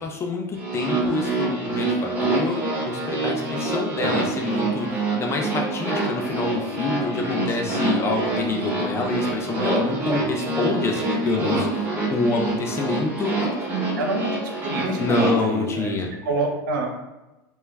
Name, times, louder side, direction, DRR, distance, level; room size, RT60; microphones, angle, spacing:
voice 1, 0.0-13.4 15.0-16.1, left 3 dB, 25° left, 2 dB, 0.5 m, -27 dB
sound 1, 0.6-15.3, right 2 dB, 15° right, 0.9 m, -26 dB
voice 2, 14.0-17.0, right 2 dB, 80° right, 2 dB, 0.6 m, -28 dB
2.1 x 2.1 x 3.3 m, 1.0 s
supercardioid pair, 110°, 11 cm